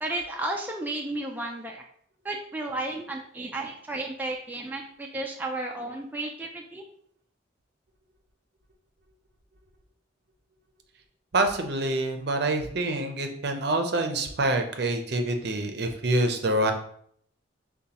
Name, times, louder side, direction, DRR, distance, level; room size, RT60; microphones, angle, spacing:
voice 1, 0.0-1.8 2.2-6.8, right 2 dB, 10° right, 1 dB, 0.3 m, -33 dB
voice 2, 11.3-16.7, right 2 dB, 55° right, 5 dB, 0.6 m, -26 dB
6.8 x 2.3 x 2.9 m, 0.65 s
head